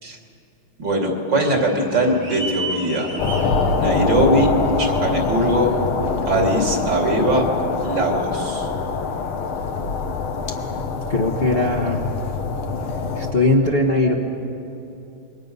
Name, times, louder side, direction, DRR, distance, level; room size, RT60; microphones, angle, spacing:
voice 1, 0.8-3.1 3.8-4.5 4.8-5.7 6.3-7.4 7.8-8.7, right 1 dB, 60° right, 1 dB, 3.4 m, -20 dB
sound 1, 1.4-6.4, right 3 dB, 90° right, 5.0 m, -35 dB
sound 2, 3.2-13.3, left 4 dB, 85° left, 2.1 m, -24 dB
voice 2, 11.1-12.0 13.2-14.1, left 2 dB, 35° left, -1 dB, 1.2 m, -19 dB
27.0 x 23.0 x 5.5 m, 2.7 s
omnidirectional pair, 2.3 m